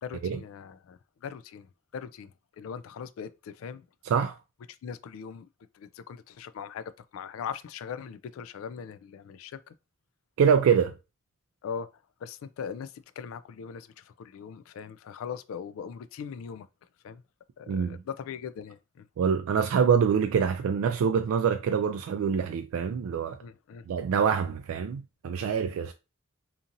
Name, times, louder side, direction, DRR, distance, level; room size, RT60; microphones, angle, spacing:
voice 1, 0.0-2.3 2.6-3.8 4.8-5.5 5.7-9.7 11.6-11.9 12.2-16.7 17.0-17.2 17.6-19.1 23.4-23.8, left 7 dB, 90° left, 0.3 m, -40 dB
voice 2, 4.0-4.4 10.4-10.9 17.7-18.0 19.2-23.4 23.9-25.9, right 7 dB, 90° right, 0.3 m, -25 dB
2.9 x 2.6 x 2.5 m
head